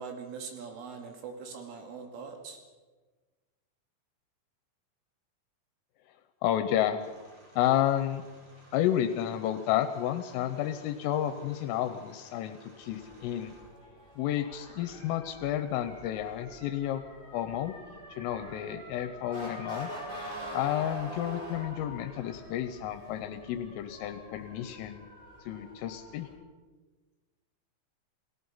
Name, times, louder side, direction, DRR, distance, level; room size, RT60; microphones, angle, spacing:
voice 1, 0.0-2.6, right 5 dB, 75° right, 4 dB, 4.7 m, -42 dB
voice 2, 6.4-7.0 7.6-8.2 8.7-13.5 14.2-17.0 17.3-17.7 18.1-19.9 20.5-25.1 25.5-26.3, left 11 dB, 80° left, 9 dB, 3.5 m, -31 dB
sound 1, 7.0-13.6, equal, 30° right, 6.7 m, -57 dB
Motor vehicle (road) / Siren, 12.8-26.3, equal, 10° right, 5.4 m, -45 dB
29.0 x 17.5 x 5.7 m, 1.3 s
omnidirectional pair, 5.9 m